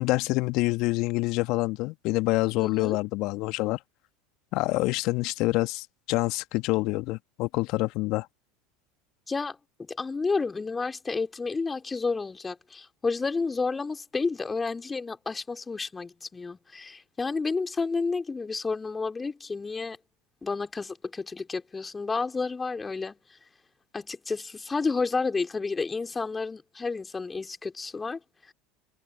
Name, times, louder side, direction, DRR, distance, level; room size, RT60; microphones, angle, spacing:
voice 1, 0.0-3.8 4.5-8.3, left 21 dB, 55° left, 1.9 m, -26 dB
voice 2, 2.6-3.0 9.3-9.6 9.9-20.0 20.4-23.2 23.9-28.2, left 4 dB, 20° left, 3.7 m, -31 dB
hypercardioid pair, 75°, 0 cm